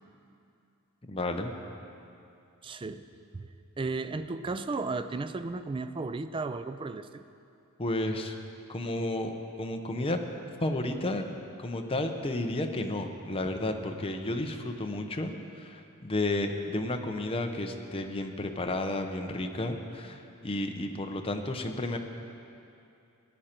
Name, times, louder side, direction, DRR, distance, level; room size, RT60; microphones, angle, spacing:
voice 1, 1.1-1.5 7.8-8.4 8.7-10.2 10.6-11.2 11.6-22.0, left 1 dB, 25° left, 4 dB, 0.7 m, -32 dB
voice 2, 2.6-3.0 3.3-3.5 3.8-7.2, right 3 dB, 25° right, 11 dB, 0.4 m, -34 dB
17.0 x 9.9 x 4.4 m, 2.6 s
head